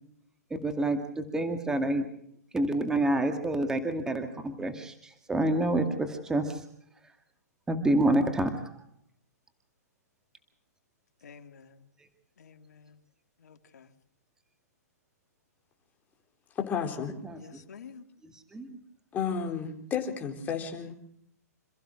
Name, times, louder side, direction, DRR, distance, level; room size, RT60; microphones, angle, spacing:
voice 1, 0.5-2.1 2.5-6.6 7.7-8.7 17.2-17.6 18.3-18.8, right 1 dB, 5° right, 2.1 m, -28 dB
voice 2, 11.2-11.9 12.4-13.0 13.4-13.9 17.3-18.1, left 6 dB, 75° left, 2.7 m, -50 dB
voice 3, 16.6-17.1 19.1-20.9, left 7 dB, 20° left, 3.9 m, -32 dB
27.5 x 15.0 x 6.4 m
hypercardioid pair, 145°, 9 cm